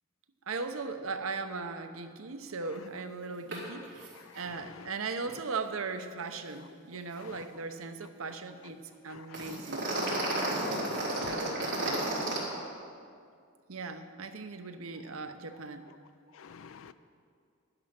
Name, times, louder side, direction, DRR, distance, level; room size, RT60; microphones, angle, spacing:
voice 1, 0.5-4.1 4.4-9.9 11.2-11.8 13.7-15.9, right 4 dB, 85° right, 8 dB, 0.8 m, -38 dB
sound 1, 3.5-3.6 3.9-4.1 4.3-4.5 9.3-12.4, right 2 dB, 55° right, 3.7 m, -32 dB
voice 2, 4.1-4.9 7.2-7.4 9.1-9.6 10.3-11.3 16.3-16.9, left 6 dB, 75° left, 12 dB, 0.4 m, -49 dB
11.5 x 10.5 x 5.9 m, 2.3 s
head